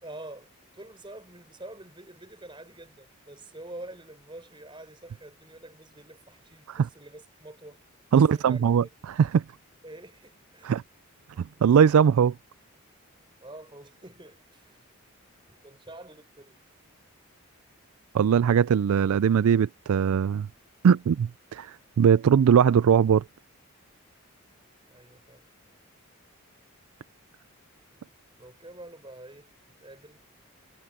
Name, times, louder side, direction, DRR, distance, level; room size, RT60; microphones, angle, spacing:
voice 1, 0.0-7.8 8.1-8.6 9.8-10.7 13.4-14.8 15.5-16.6 24.4-24.5 24.9-25.4 27.9-28.0 28.4-29.5 29.8-30.2, right 1 dB, 20° right, 4.5 m, -46 dB
voice 2, 8.1-9.4 10.6-10.8 11.4-12.3 18.1-20.5 20.8-23.2, right 7 dB, 75° right, 0.3 m, -21 dB
head